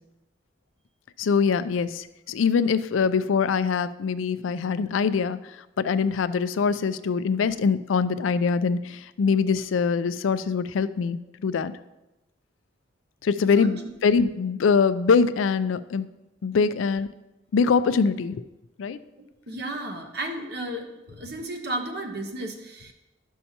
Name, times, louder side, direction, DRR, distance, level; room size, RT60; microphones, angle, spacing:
voice 1, 1.2-5.4 5.8-11.7 13.2-16.1 16.4-17.1 17.5-18.4 18.8-19.0, left 5 dB, 85° left, 13 dB, 0.4 m, -23 dB
voice 2, 19.5-22.9, right 1 dB, 55° right, 4 dB, 1.0 m, -33 dB
12.0 x 5.5 x 2.8 m, 0.98 s
head